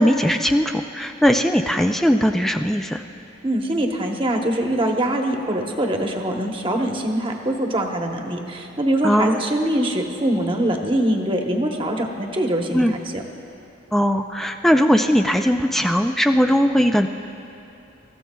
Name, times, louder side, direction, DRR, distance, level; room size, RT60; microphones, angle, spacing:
voice 1, 0.0-3.0 9.0-9.4 12.7-12.9 13.9-17.1, equal, ahead, 5 dB, 0.3 m, -19 dB
voice 2, 3.4-13.2, right 1 dB, 25° right, 2 dB, 1.1 m, -23 dB
27.0 x 14.5 x 2.3 m, 2.8 s
head